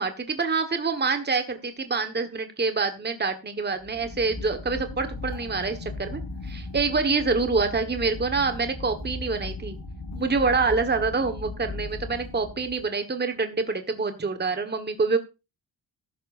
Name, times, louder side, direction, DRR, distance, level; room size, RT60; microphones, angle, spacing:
voice 1, 0.0-9.8 10.2-15.2, right 4 dB, 25° right, 7 dB, 1.4 m, -26 dB
sound 1, 3.8-12.9, left 2 dB, 60° left, 4.1 m, -37 dB
14.5 x 12.0 x 2.6 m, 0.28 s
cardioid pair, 100°, 41 cm